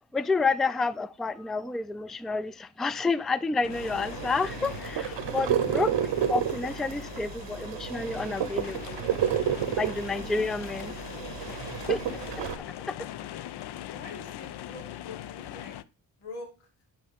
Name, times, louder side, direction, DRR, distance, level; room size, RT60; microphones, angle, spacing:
voice 1, 0.1-5.9 6.3-9.0 9.7-10.9 11.9-12.0 12.9-13.0, left 3 dB, ahead, 0.3 m, -29 dB
sound 1, 3.6-15.8, left 12 dB, 55° left, 0.6 m, -41 dB
sound 2, 3.7-12.6, right 9 dB, 65° right, 0.8 m, -31 dB
voice 2, 13.9-15.8 16.2-16.7, left 3 dB, 90° left, 1.6 m, -44 dB
9.0 x 4.5 x 3.4 m
hypercardioid pair, 40°, 47 cm